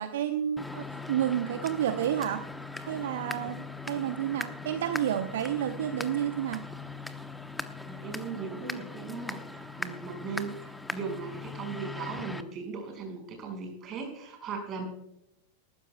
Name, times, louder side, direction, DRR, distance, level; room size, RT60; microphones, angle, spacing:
voice 1, 0.0-2.5 2.8-6.7, right 10 dB, 60° right, 9 dB, 0.8 m, -30 dB
sound 1, 0.6-12.4, left 3 dB, 5° left, 0.9 m, -40 dB
voice 2, 7.8-14.9, right 5 dB, 30° right, 3 dB, 5.1 m, -38 dB
19.5 x 14.5 x 2.3 m, 0.84 s
figure-of-eight pair, 90°, 0 cm